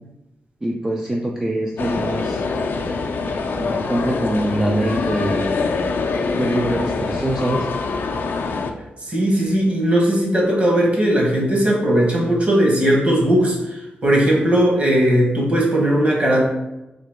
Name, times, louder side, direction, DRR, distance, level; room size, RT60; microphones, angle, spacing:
voice 1, 0.6-2.4 3.5-5.6 6.4-7.7, right 1 dB, 15° right, 0 dB, 0.4 m, -23 dB
sound 1, 1.8-8.7, left 4 dB, 65° left, 0.4 m, -24 dB
voice 2, 9.1-13.6 14.0-16.5, right 1 dB, 35° right, -2 dB, 1.3 m, -17 dB
3.8 x 2.9 x 3.5 m, 0.95 s
wide cardioid pair, 100°, 4 cm